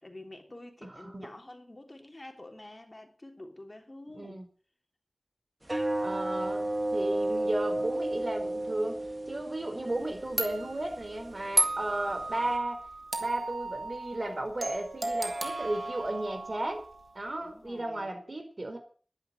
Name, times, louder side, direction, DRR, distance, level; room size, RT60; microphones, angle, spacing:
voice 1, 0.0-4.4 17.4-18.1, left 1 dB, 35° left, 3.2 m, -48 dB
voice 2, 0.8-1.3 4.1-4.5 6.0-12.9 13.2-16.8 17.1-18.8, right 1 dB, 50° right, 4.5 m, -34 dB
sound 1, 5.6-12.6, right 1 dB, 30° right, 2.8 m, -34 dB
sound 2, 9.9-10.0 10.4-17.1, right 2 dB, 65° right, 2.6 m, -34 dB
12.0 x 10.5 x 7.5 m
wide cardioid pair, 60°, 0 cm